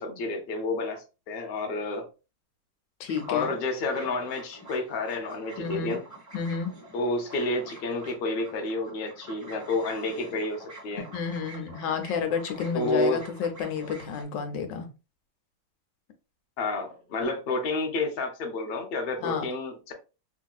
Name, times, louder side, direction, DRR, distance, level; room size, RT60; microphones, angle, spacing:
voice 1, 0.0-2.1 3.3-6.0 6.9-11.0 12.7-13.2 16.6-19.9, left 2 dB, 70° left, 0.5 m, -30 dB
voice 2, 3.0-3.5 5.6-6.0 6.3-6.8 11.0-14.9 19.2-19.4, left 6 dB, 85° left, 1.3 m, -30 dB
Radio interference, 3.1-14.2, right 1 dB, 20° right, 0.4 m, -47 dB
2.9 x 2.7 x 2.3 m
omnidirectional pair, 1.9 m